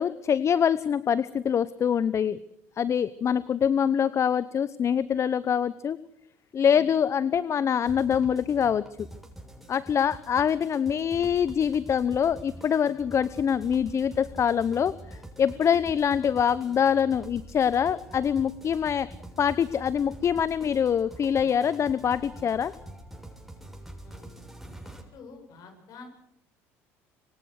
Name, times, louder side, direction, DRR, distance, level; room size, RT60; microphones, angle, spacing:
voice 1, 0.0-2.4 2.8-6.0 6.5-9.1 9.7-14.9 15.4-19.1 19.4-22.7, left 8 dB, 40° left, 17 dB, 0.9 m, -24 dB
sound 1, 7.8-25.0, right 1 dB, 5° right, 7.0 m, -45 dB
voice 2, 24.8-26.1, left 4 dB, 55° left, 5 dB, 7.8 m, -48 dB
26.0 x 25.0 x 6.6 m, 0.77 s
hypercardioid pair, 75°, 7 cm